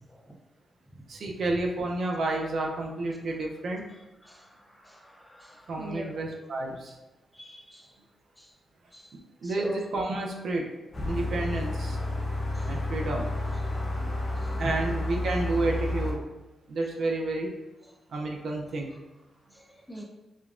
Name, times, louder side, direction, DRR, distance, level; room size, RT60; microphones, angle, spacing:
voice 1, 1.1-3.8 5.7-7.0 9.1-10.7 11.0-12.0 12.7-13.3 14.6-16.2 16.7-17.5 18.1-19.0, right 2 dB, 65° right, 1 dB, 0.5 m, -30 dB
voice 2, 4.2-6.1 7.3-7.9 8.4-8.5 8.9-9.1 9.4-9.8 12.5-12.7 13.9-14.2 14.4-14.5 19.9-20.0, equal, 5° left, 0 dB, 0.5 m, -43 dB
sound 1, 10.9-16.1, left 1 dB, 35° left, 1.0 m, -30 dB
5.0 x 2.2 x 2.5 m, 1.1 s
wide cardioid pair, 125°, 0 cm